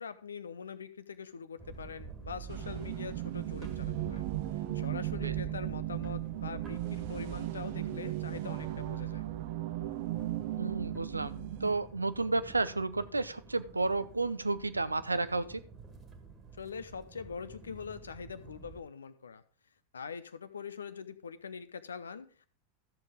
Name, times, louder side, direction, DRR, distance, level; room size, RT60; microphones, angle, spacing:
voice 1, 0.0-4.3 4.6-9.3 16.6-19.4 19.9-22.5, left 6 dB, 70° left, 13 dB, 0.7 m, -43 dB
sound 1, 1.6-18.8, right 6 dB, 25° right, 1.7 m, -48 dB
sound 2, 2.5-11.7, right 15 dB, 50° right, 0.8 m, -36 dB
voice 2, 10.6-15.6, right 3 dB, 80° right, 14 dB, 0.5 m, -32 dB
13.5 x 7.1 x 3.7 m, 0.42 s
figure-of-eight pair, 90°, 0 cm